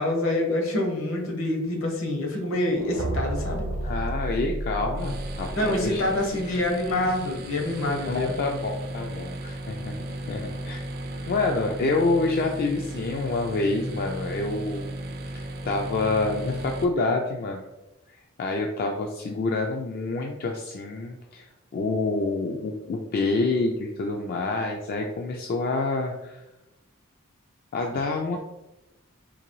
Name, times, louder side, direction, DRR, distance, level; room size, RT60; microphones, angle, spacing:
voice 1, 0.0-3.7 5.5-8.3, left 1 dB, 70° left, 2 dB, 0.9 m, -26 dB
sound 1, 2.7-6.6, right 1 dB, 80° right, 0.7 m, -32 dB
voice 2, 3.8-6.0 6.5-6.6 8.1-9.9 10.3-10.9 11.3-14.9 15.3-17.7 18.4-26.4 27.7-28.4, left 3 dB, 45° left, 2 dB, 0.3 m, -27 dB
sound 2, 4.9-16.9, right 1 dB, 45° right, 0.4 m, -35 dB
3.8 x 2.6 x 3.0 m, 0.98 s
head